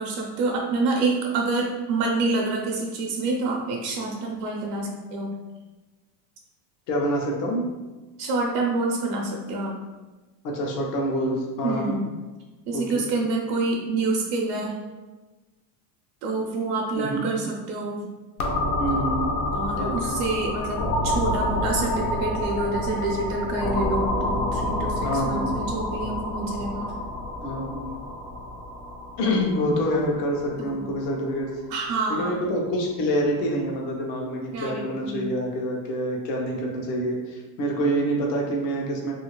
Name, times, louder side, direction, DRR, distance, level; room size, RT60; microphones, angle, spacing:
voice 1, 0.0-5.3 8.2-9.8 11.6-12.1 12.7-14.8 16.2-18.1 19.5-26.9 30.6-30.9 31.7-32.4 34.5-35.3, right 3 dB, 65° right, 0 dB, 0.7 m, -27 dB
voice 2, 6.9-7.7 10.4-12.0 12.7-12.8 16.9-17.3 18.8-19.3 19.8-20.1 25.0-25.5 27.4-27.8 29.2-31.5 32.1-39.1, equal, 75° left, 0 dB, 0.9 m, -26 dB
sound 1, 18.4-32.0, left 1 dB, 50° left, 0.5 m, -28 dB
2.7 x 2.7 x 3.0 m, 1.2 s
cardioid pair, 165°, 50 cm